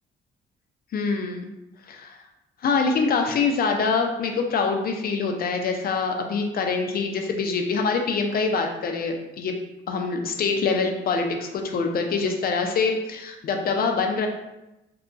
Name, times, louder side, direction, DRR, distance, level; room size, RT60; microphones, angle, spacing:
voice 1, 0.9-1.5 1.9-2.2 2.6-9.5 9.9-14.3, left 4 dB, 50° left, 3 dB, 0.5 m, -25 dB
2.7 x 2.3 x 2.5 m, 0.95 s
cardioid pair, 90°, 20 cm